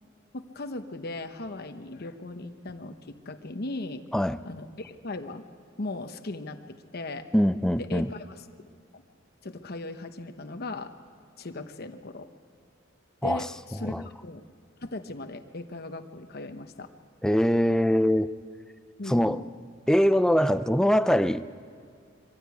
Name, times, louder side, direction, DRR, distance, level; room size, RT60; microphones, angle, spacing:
voice 1, 0.3-4.0 4.4-5.4 5.8-6.6 6.9-7.3 7.8-8.4 8.9-9.0 9.4-10.9 11.4-12.3 13.2-14.4 14.8-16.9 19.0-19.4, left 2 dB, 50° left, 1.0 m, -38 dB
voice 2, 7.3-8.1 13.2-13.5 13.8-14.0 17.2-18.3 19.1-19.4 19.9-21.5, equal, 5° left, 0.4 m, -23 dB
23.0 x 15.0 x 8.3 m
head